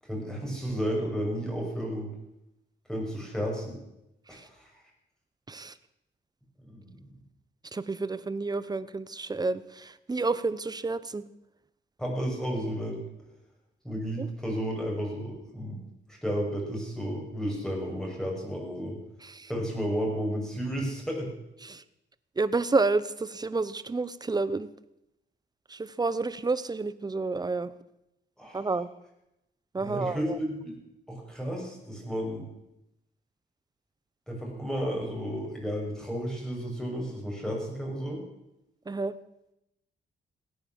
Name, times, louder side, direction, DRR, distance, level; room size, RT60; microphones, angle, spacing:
voice 1, 0.0-2.1 2.9-3.8 4.3-4.7 6.6-7.1 12.0-13.0 13.8-15.8 16.1-19.0 19.5-21.3 28.4-28.7 29.8-30.8 31.1-32.5 34.3-38.2, equal, 5° left, -1 dB, 6.4 m, -32 dB
voice 2, 7.7-11.2 14.2-14.3 19.2-19.5 21.6-21.8 22.4-24.7 25.7-27.7 28.5-28.9 29.7-30.4 38.9-39.2, right 3 dB, 20° right, 15 dB, 0.9 m, -30 dB
17.5 x 9.9 x 7.4 m, 0.86 s
cardioid pair, 95°, 20 cm